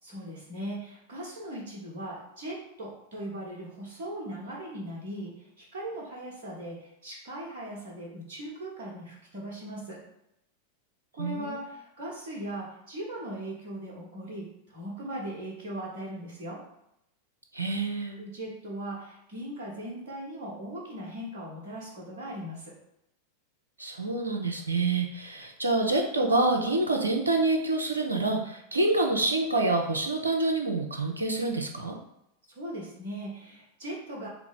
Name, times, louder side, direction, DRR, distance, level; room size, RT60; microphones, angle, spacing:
voice 1, 0.0-10.0 11.1-16.6 18.2-22.7 32.5-34.3, right 1 dB, 50° right, -5 dB, 1.2 m, -39 dB
voice 2, 11.2-11.6 17.5-18.2 23.8-31.9, right 2 dB, 80° right, 2 dB, 0.6 m, -27 dB
4.4 x 2.1 x 3.9 m, 0.82 s
figure-of-eight pair, 90°, 0 cm